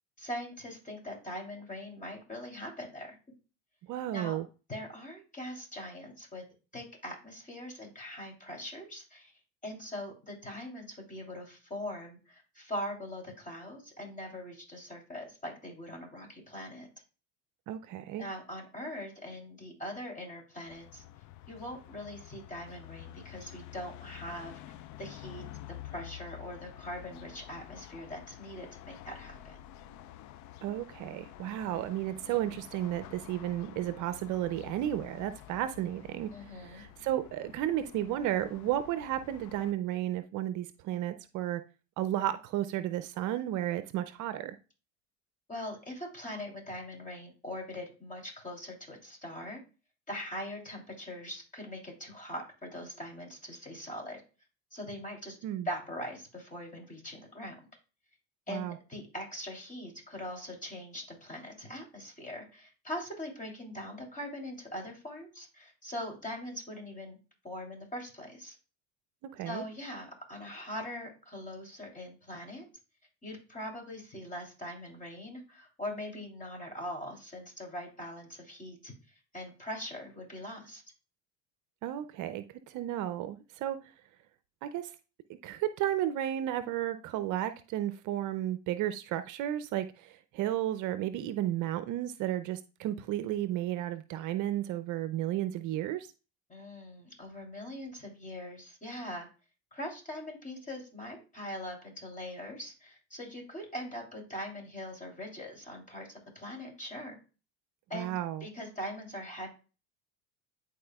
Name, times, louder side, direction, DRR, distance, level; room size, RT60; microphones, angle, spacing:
voice 1, 0.2-3.2 4.1-4.4 4.7-6.4 6.7-9.3 9.6-16.9 18.2-21.0 21.5-25.4 25.8-29.6 36.3-36.8 45.5-49.6 50.1-54.2 54.7-55.4 55.6-57.6 58.5-67.2 67.4-68.6 69.4-72.7 73.2-78.9 79.3-80.8 96.5-99.3 99.7-107.2 107.9-108.1 108.4-109.5, left 1 dB, 20° left, 3.2 m, -42 dB
voice 2, 3.9-4.5 17.7-18.3 30.6-41.6 42.0-44.6 55.4-55.7 58.5-58.8 69.3-69.7 81.8-83.9 84.6-84.9 85.4-96.1 107.9-108.4, right 12 dB, 55° right, 0.6 m, -33 dB
sound 1, 20.7-39.7, left 13 dB, 50° left, 0.5 m, -49 dB
11.0 x 4.3 x 2.3 m
supercardioid pair, 90°, 37 cm